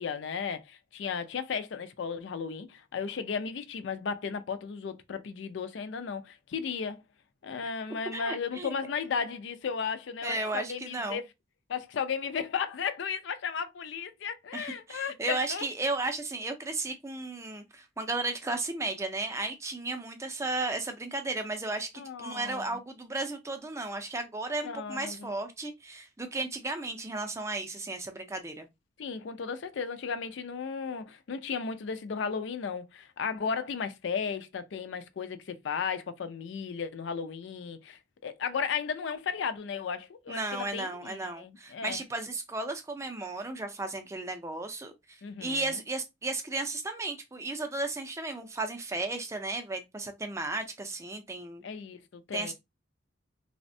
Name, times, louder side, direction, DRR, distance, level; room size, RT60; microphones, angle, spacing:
voice 1, 0.0-7.0 7.4-11.2 11.7-15.7 22.0-22.8 24.6-25.3 29.0-42.0 45.2-45.8 51.6-52.5, left 6 dB, 65° left, 0.4 m, -35 dB
voice 2, 8.1-8.7 10.2-11.2 14.5-28.7 40.3-51.6 52.3-52.5, right 2 dB, 15° right, 0.4 m, -34 dB
3.3 x 2.1 x 2.6 m
head